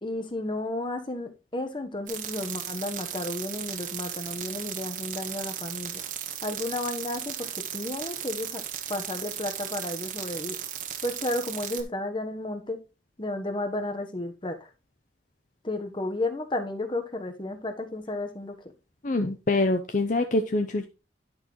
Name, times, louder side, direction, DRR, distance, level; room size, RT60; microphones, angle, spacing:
voice 1, 0.0-6.0 6.4-8.6 8.9-10.6 11.0-12.8 13.2-14.7 15.6-18.7, left 2 dB, 30° left, 1.1 m, -32 dB
sound 1, 2.1-11.8, right 9 dB, 45° right, 1.1 m, -36 dB
voice 2, 19.0-20.9, left 2 dB, 45° left, 0.6 m, -25 dB
10.5 x 6.2 x 3.1 m
head